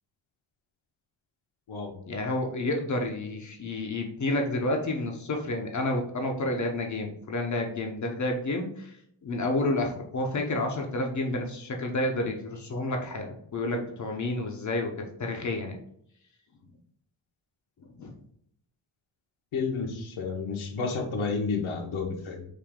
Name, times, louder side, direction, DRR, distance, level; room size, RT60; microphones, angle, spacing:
voice 1, 2.1-8.9 9.2-14.9 15.2-15.8 18.0-18.1, left 2 dB, 40° left, 2 dB, 0.6 m, -30 dB
voice 2, 19.5-22.4, left 4 dB, 85° left, 2 dB, 1.1 m, -31 dB
4.9 x 2.5 x 3.5 m, 0.69 s
wide cardioid pair, 155°, 47 cm